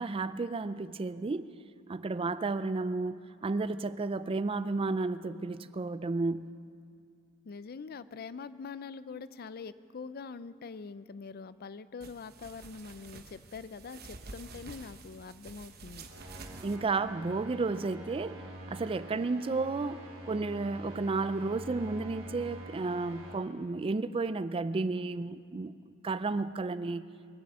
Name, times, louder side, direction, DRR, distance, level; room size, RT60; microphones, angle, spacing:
voice 1, 0.0-1.6 1.9-6.5 16.5-27.1, right 3 dB, 25° right, 0.4 m, -32 dB
voice 2, 7.4-16.1, left 5 dB, 50° left, 0.4 m, -44 dB
sound 1, 12.0-16.8, right 3 dB, 50° right, 1.0 m, -49 dB
sound 2, 16.0-23.3, right 1 dB, 80° right, 3.6 m, -46 dB
22.5 x 7.8 x 7.5 m
head